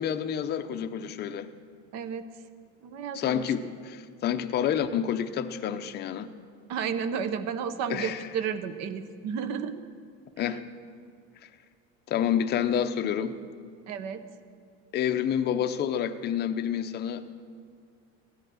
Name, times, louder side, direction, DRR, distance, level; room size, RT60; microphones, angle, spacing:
voice 1, 0.0-1.5 3.1-6.3 7.9-8.3 10.4-10.6 12.1-13.4 14.9-17.3, left 9 dB, 30° left, 8 dB, 0.6 m, -28 dB
voice 2, 1.9-2.3 2.8-3.5 6.7-9.8 13.9-14.2, right 7 dB, 50° right, 12 dB, 0.8 m, -32 dB
15.5 x 10.5 x 6.2 m, 2.1 s
cardioid pair, 155°, 34 cm